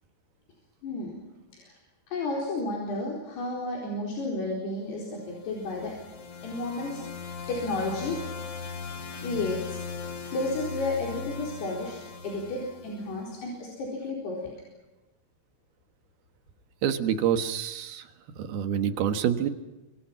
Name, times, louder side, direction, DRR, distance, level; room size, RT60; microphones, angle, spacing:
voice 1, 0.8-1.2 1.5-1.8 2.1-5.9 6.4-7.0 7.5-8.2 9.1-9.8 10.3-12.0 12.2-14.5, left 2 dB, 80° left, -2 dB, 6.4 m, -32 dB
sound 1, 5.2-13.4, left 5 dB, 45° left, 2.5 m, -39 dB
voice 2, 16.8-18.0 18.4-19.5, right 9 dB, 75° right, 8 dB, 3.3 m, -27 dB
29.0 x 26.5 x 6.0 m, 1.1 s
omnidirectional pair, 4.6 m